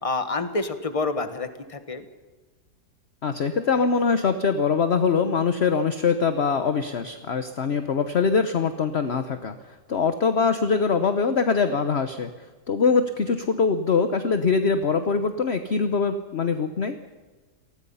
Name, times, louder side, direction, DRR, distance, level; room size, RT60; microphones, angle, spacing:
voice 1, 0.0-2.0, left 3 dB, 20° left, 8 dB, 1.5 m, -28 dB
voice 2, 3.2-9.5 9.9-12.3 12.7-17.0, left 5 dB, 45° left, 8 dB, 1.1 m, -23 dB
28.5 x 19.5 x 5.6 m, 1.3 s
omnidirectional pair, 1.7 m